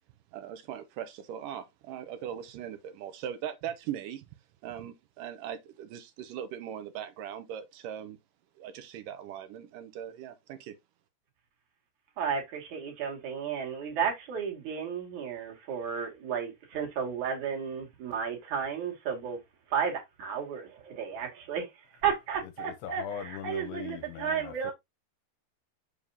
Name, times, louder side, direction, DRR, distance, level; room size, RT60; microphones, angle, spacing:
voice 1, 0.3-4.3 4.6-8.2 8.6-10.8, right 10 dB, 70° right, 2.1 m, -40 dB
voice 2, 12.2-19.4 19.7-21.7 22.0-24.7, right 7 dB, 50° right, 3.3 m, -33 dB
voice 3, 22.6-24.7, left 9 dB, 80° left, 2.9 m, -40 dB
7.0 x 6.9 x 2.8 m
omnidirectional pair, 4.7 m